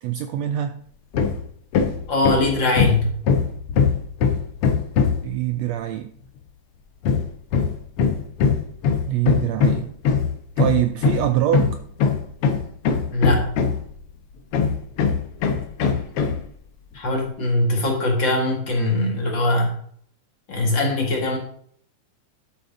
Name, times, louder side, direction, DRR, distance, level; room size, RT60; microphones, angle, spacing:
voice 1, 0.0-0.8 5.2-6.1 9.0-9.9 10.6-11.8 15.8-16.0, right 12 dB, 90° right, 9 dB, 1.5 m, -24 dB
Hammer, 1.1-1.4 1.7-5.3 7.0-14.0 14.5-16.4, left 6 dB, 65° left, 1.5 m, -21 dB
voice 2, 2.1-3.1 13.1-13.5 16.9-19.7 20.5-21.4, left 2 dB, 45° left, 0 dB, 2.0 m, -21 dB
11.5 x 8.5 x 3.8 m, 0.63 s
omnidirectional pair, 3.6 m